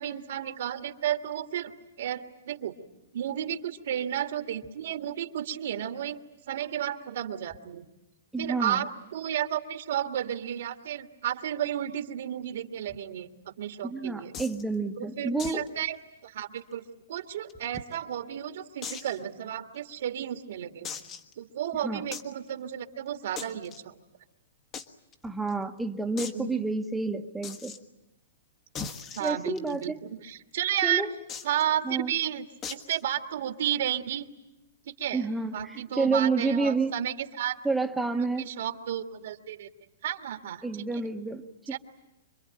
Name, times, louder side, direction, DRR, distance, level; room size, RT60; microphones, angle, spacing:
voice 1, 0.0-1.7 2.0-2.7 3.1-6.2 6.5-7.8 8.4-14.3 15.0-16.0 16.2-20.9 21.4-23.9 26.3-26.6 29.1-31.1 31.4-34.3 34.9-35.3 35.5-37.6 38.4-39.7 40.0-40.9 41.7-41.8, right 11 dB, 65° right, 6 dB, 1.8 m, -32 dB
voice 2, 8.3-8.8 13.8-15.7 21.8-22.1 25.2-27.8 29.2-30.0 30.8-31.1 31.8-32.1 35.1-36.9 37.6-38.5 40.6-41.4, right 3 dB, 5° right, 5 dB, 1.2 m, -29 dB
sound 1, 14.3-14.6 15.4-15.7 15.9-16.0 16.4-16.5 17.2-18.0 18.8-19.2 19.7-19.8 20.8-21.3 22.1-22.3 23.4-23.8 24.7-24.9 25.1-25.2 25.5-25.6 26.2-26.4 27.4-27.8 28.7-29.8 31.3-31.6 32.6-33.0, left 6 dB, 25° left, 1.4 m, -39 dB
26.5 x 22.5 x 9.0 m, 0.92 s
hypercardioid pair, 150°, 0 cm